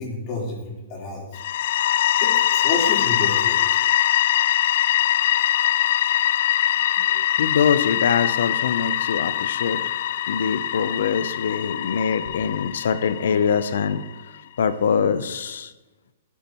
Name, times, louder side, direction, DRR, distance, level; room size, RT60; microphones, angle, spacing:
voice 1, 0.0-1.4 2.2-3.6, left 3 dB, 35° left, -5 dB, 3.9 m, -30 dB
sound 1, 1.3-14.0, left 12 dB, 60° left, 0.3 m, -23 dB
voice 2, 7.0-9.8 10.3-14.0 14.6-15.7, left 7 dB, 80° left, 13 dB, 0.7 m, -23 dB
14.0 x 8.3 x 3.1 m, 1.2 s
hypercardioid pair, 150°, 0 cm